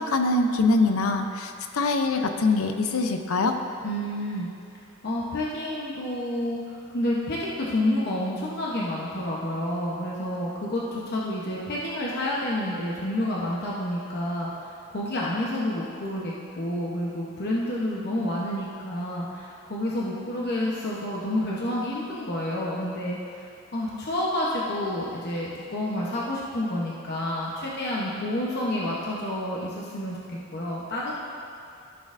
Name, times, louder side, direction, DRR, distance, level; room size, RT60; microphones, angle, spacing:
voice 1, 0.0-3.6, left 3 dB, 75° left, 6 dB, 0.6 m, -23 dB
voice 2, 3.8-4.5 5.0-23.4 23.7-31.1, left 1 dB, 50° left, -5 dB, 0.9 m, -29 dB
13.5 x 6.4 x 2.6 m, 2.5 s
head